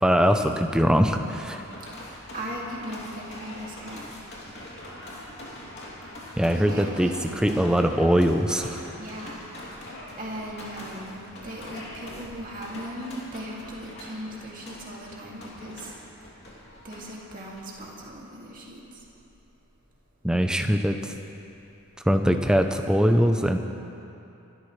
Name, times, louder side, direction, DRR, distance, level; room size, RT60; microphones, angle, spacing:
voice 1, 0.0-1.6 6.4-8.8 20.2-21.1 22.1-23.6, equal, 5° right, 5 dB, 0.6 m, -22 dB
sound 1, 1.3-18.0, left 1 dB, 50° left, 3.0 m, -43 dB
voice 2, 2.3-4.1 6.5-7.1 7.4-7.9 9.0-9.4 10.2-15.9 16.8-18.8, right 1 dB, 40° right, -4 dB, 2.4 m, -38 dB
26.5 x 13.0 x 3.3 m, 2.9 s
head